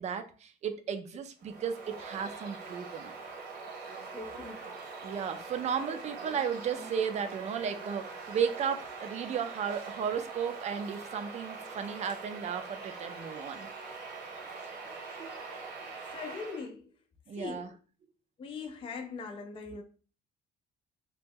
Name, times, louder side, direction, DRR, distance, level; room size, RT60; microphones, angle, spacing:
voice 1, 0.0-3.1 5.0-13.7 15.2-15.3 17.3-17.7, right 7 dB, 40° right, 0.5 m, -34 dB
Bird vocalization bird call bird song, 1.4-16.7, right 4 dB, 75° right, 1.0 m, -43 dB
voice 2, 4.1-4.6 16.1-16.9 17.4-17.7 18.4-19.8, left 4 dB, 30° left, 0.4 m, -41 dB
2.9 x 2.2 x 3.5 m
cardioid pair, 110°, 17 cm